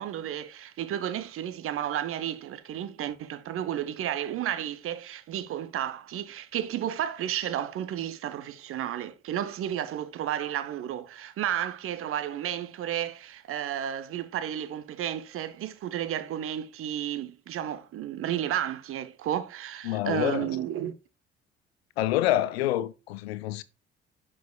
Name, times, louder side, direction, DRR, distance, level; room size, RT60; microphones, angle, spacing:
voice 1, 0.0-20.9, right 11 dB, 40° right, 0.7 m, -32 dB
voice 2, 19.8-20.5 22.0-23.6, left 14 dB, 70° left, 0.6 m, -27 dB
10.5 x 4.9 x 2.3 m
figure-of-eight pair, 50°, 33 cm